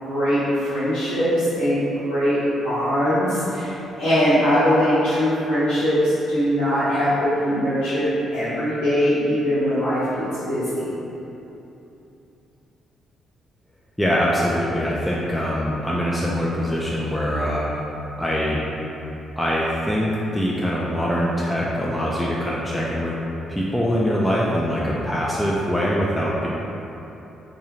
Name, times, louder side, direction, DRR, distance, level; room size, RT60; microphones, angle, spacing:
voice 1, 0.0-2.4 2.6-10.9, equal, 85° left, -17 dB, 0.8 m, -21 dB
voice 2, 14.0-17.7 18.2-18.6 19.4-23.1 23.5-26.5, equal, 5° left, -6 dB, 0.4 m, -23 dB
2.6 x 2.3 x 2.9 m, 3.0 s
hypercardioid pair, 50°, 0 cm